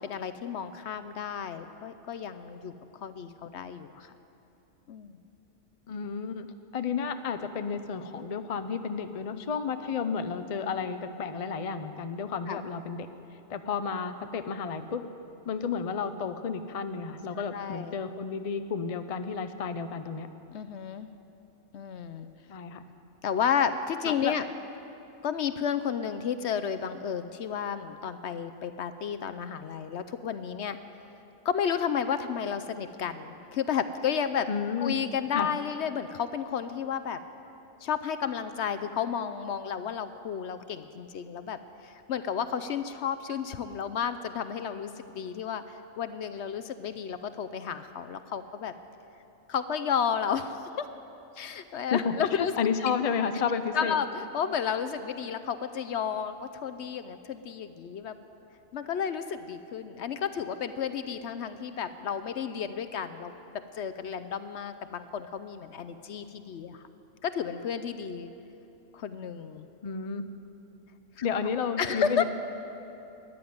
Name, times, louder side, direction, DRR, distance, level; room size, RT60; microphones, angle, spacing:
voice 1, 0.0-2.7 3.0-4.1 4.9-5.2 12.5-12.6 17.5-17.9 20.5-21.1 21.7-22.3 23.2-24.4 25.2-30.8 31.4-34.5 34.8-37.2 37.8-48.7 49.5-50.9 51.4-52.5 53.7-58.2 58.7-63.3 63.7-66.8 67.2-68.3 68.9-69.7 71.2-71.3 71.8-72.2, left 7 dB, 65° left, 11 dB, 0.8 m, -32 dB
voice 2, 5.9-6.5 6.7-13.1 13.5-15.0 15.5-20.3 22.5-22.8 24.0-24.3 34.5-35.0 35.3-35.5 51.9-54.0 69.8-70.2 71.2-72.2, left 6 dB, 45° left, 9 dB, 0.5 m, -31 dB
14.0 x 10.5 x 9.3 m, 2.9 s
omnidirectional pair, 1.4 m